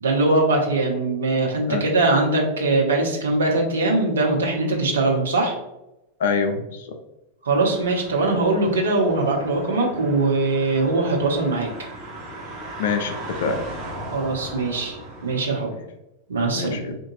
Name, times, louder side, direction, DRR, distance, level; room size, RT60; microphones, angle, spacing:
voice 1, 0.0-5.6 7.4-11.7 14.1-15.0 15.2-15.7 16.3-17.0, right 2 dB, 65° right, -1 dB, 0.8 m, -21 dB
voice 2, 6.2-7.0 12.8-13.6 16.5-16.9, left 5 dB, 60° left, 6 dB, 0.4 m, -25 dB
sound 1, 7.5-15.5, right 1 dB, 25° right, 1.2 m, -37 dB
3.7 x 2.5 x 2.6 m, 0.92 s
figure-of-eight pair, 90°, 0 cm